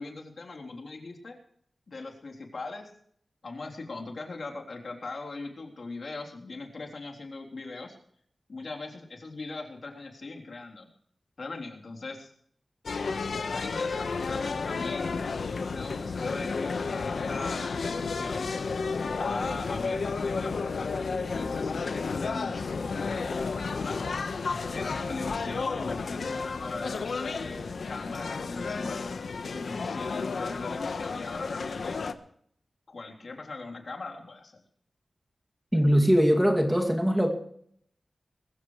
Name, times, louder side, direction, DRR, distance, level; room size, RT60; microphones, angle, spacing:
voice 1, 0.0-1.3 1.9-2.9 3.4-7.9 8.5-10.9 11.4-12.3 13.3-15.2 15.7-18.4 19.2-24.0 24.7-29.2 29.5-32.0 32.9-34.6, left 3 dB, 60° left, 1 dB, 3.5 m, -40 dB
sound 1, 12.9-32.1, left 4 dB, 85° left, 1.2 m, -32 dB
voice 2, 35.7-37.3, equal, 5° right, 2 dB, 2.4 m, -21 dB
22.0 x 15.0 x 3.2 m, 0.64 s
wide cardioid pair, 115°, 0 cm